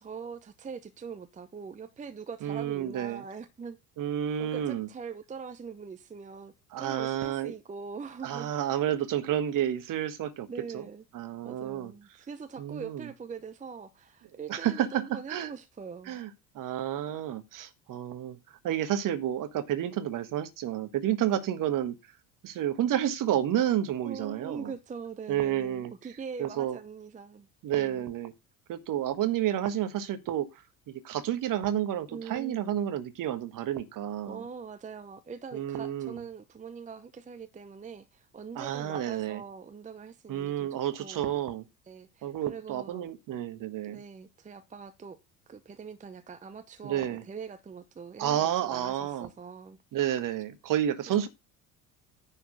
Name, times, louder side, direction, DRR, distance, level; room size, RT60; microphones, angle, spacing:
voice 1, 0.0-3.8 4.4-8.5 10.5-11.0 11.4-16.2 21.3-21.5 24.0-27.5 27.7-28.1 32.1-32.6 34.2-41.3 41.9-43.1 43.8-45.2 45.5-49.8 51.2-51.3, right 5 dB, 15° right, 0.8 m, -43 dB
voice 2, 2.4-3.2 4.0-4.9 6.7-7.5 8.2-10.5 10.7-10.8 11.1-11.9 12.6-13.1 14.5-15.5 16.1-16.3 16.5-18.4 18.6-22.0 22.4-24.7 25.3-25.9 26.4-26.8 27.6-28.3 28.7-30.5 30.9-34.4 35.5-36.2 38.5-39.4 40.3-41.6 42.2-44.0 46.8-47.2 48.2-49.3 49.9-51.3, right 11 dB, 45° right, 1.5 m, -30 dB
10.0 x 4.4 x 6.3 m
figure-of-eight pair, 60°, 46 cm